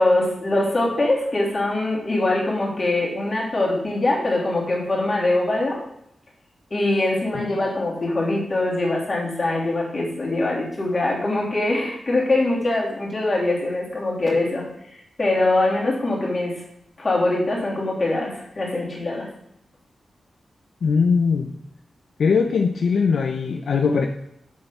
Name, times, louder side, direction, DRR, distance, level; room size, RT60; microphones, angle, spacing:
voice 1, 0.0-5.8 6.7-16.6 17.0-19.3, left 2 dB, 30° left, -4 dB, 3.3 m, -23 dB
voice 2, 20.8-21.5 22.2-24.1, left 5 dB, 70° left, 3 dB, 0.7 m, -20 dB
7.8 x 6.7 x 5.5 m, 0.78 s
wide cardioid pair, 165°, 0 cm